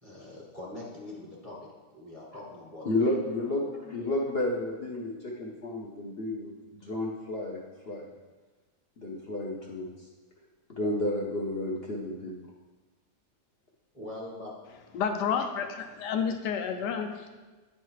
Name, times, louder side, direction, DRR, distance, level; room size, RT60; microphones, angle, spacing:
voice 1, 0.0-1.7 1.9-3.1 3.4-4.2 13.9-14.5, left 1 dB, 20° left, -5 dB, 1.4 m, -43 dB
voice 2, 2.8-3.6 3.9-7.6 7.8-8.1 9.0-9.9 10.8-12.3, left 1 dB, 55° left, -2 dB, 0.7 m, -31 dB
voice 3, 14.9-17.4, left 7 dB, 90° left, 6 dB, 1.3 m, -30 dB
9.0 x 3.3 x 4.6 m, 1.2 s
omnidirectional pair, 1.8 m